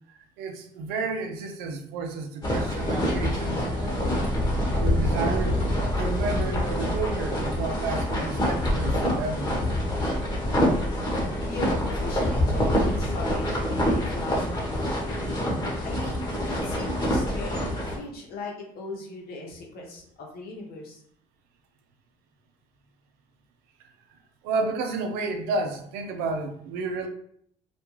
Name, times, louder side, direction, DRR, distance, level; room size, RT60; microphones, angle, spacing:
voice 1, 0.1-4.2 4.7-5.6 5.9-9.7 23.8-24.2 24.4-27.1, right 3 dB, 80° right, 5 dB, 0.5 m, -31 dB
sound 1, 2.4-18.0, left 1 dB, 25° left, 1.1 m, -26 dB
voice 2, 11.5-21.0, left 2 dB, 70° left, 0 dB, 0.8 m, -39 dB
2.4 x 2.2 x 3.0 m, 0.66 s
supercardioid pair, 70°, 16 cm